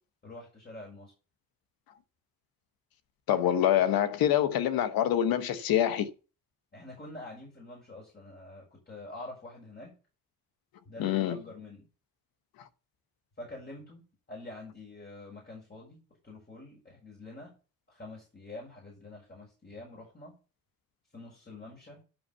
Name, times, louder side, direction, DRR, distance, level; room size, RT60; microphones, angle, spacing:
voice 1, 0.2-1.1 6.7-9.9 10.8-11.9 13.4-14.0 14.3-16.0 16.2-17.5 17.9-20.3 21.1-22.0, left 2 dB, 30° left, 6.7 m, -46 dB
voice 2, 3.3-6.1 11.0-11.4, left 11 dB, 85° left, 1.3 m, -25 dB
12.0 x 6.0 x 5.7 m
cardioid pair, 80°, 35 cm